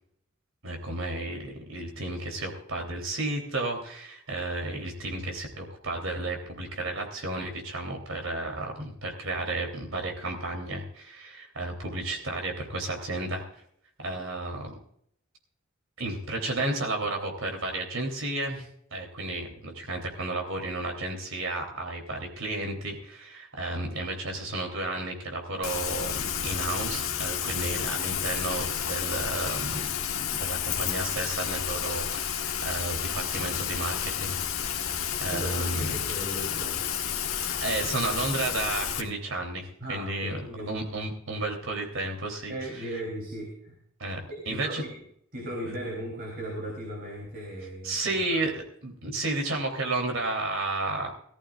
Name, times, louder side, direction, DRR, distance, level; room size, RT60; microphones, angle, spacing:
voice 1, 0.6-13.4 14.0-14.7 16.0-29.8 30.3-34.6 35.2-35.9 37.6-40.4 40.7-42.9 44.0-44.2 44.4-44.8 45.6-45.7 47.8-51.1, right 2 dB, 75° right, 2 dB, 3.4 m, -32 dB
Rain, 25.6-39.0, left 8 dB, 85° left, 1.5 m, -31 dB
voice 2, 35.3-36.8 39.8-40.8 42.5-43.8 44.3-44.8 45.3-48.4, equal, 45° right, -1 dB, 3.4 m, -37 dB
18.5 x 14.0 x 2.5 m, 0.69 s
head